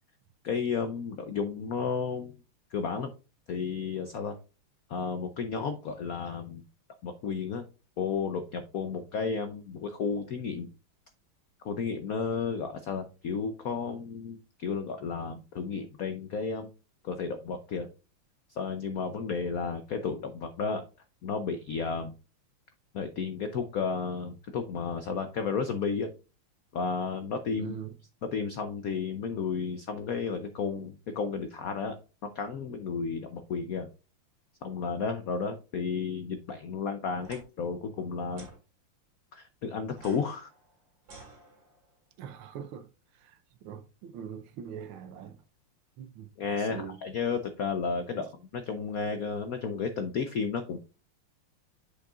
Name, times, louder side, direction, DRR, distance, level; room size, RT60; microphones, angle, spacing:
voice 1, 0.4-2.3 2.7-3.1 3.5-4.4 4.9-6.6 7.0-7.6 8.0-10.7 11.6-16.7 17.0-17.9 18.5-20.8 21.2-22.1 22.9-26.1 26.7-27.8 28.3-32.0 32.2-33.9 34.6-38.5 39.3-40.5 46.4-50.8, left 5 dB, 75° left, 0.8 m, -32 dB
voice 2, 27.6-27.9 42.2-42.9 43.2-45.4 46.0-46.3 46.6-47.0, right 8 dB, 80° right, 1.6 m, -42 dB
sound 1, 37.2-37.4 38.3-38.6 39.9-41.9, right 2 dB, 45° right, 2.7 m, -51 dB
8.3 x 6.4 x 2.4 m
omnidirectional pair, 2.4 m